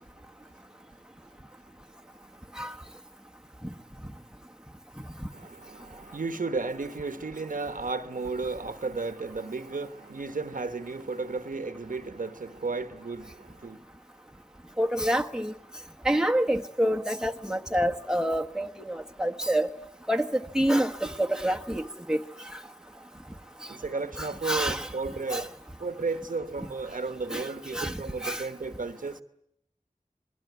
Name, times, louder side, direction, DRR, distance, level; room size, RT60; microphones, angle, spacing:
voice 1, 5.3-13.8 23.7-25.5 25.8-29.2, right 3 dB, 85° right, 1.2 m, -34 dB
voice 2, 14.8-15.5 16.0-19.7 20.1-22.2 24.2-24.9 25.3-25.4 27.3-27.5 27.7-27.9 28.2-28.4, right 1 dB, 5° right, 1.3 m, -27 dB
27.5 x 21.0 x 9.5 m
wide cardioid pair, 60°, 13 cm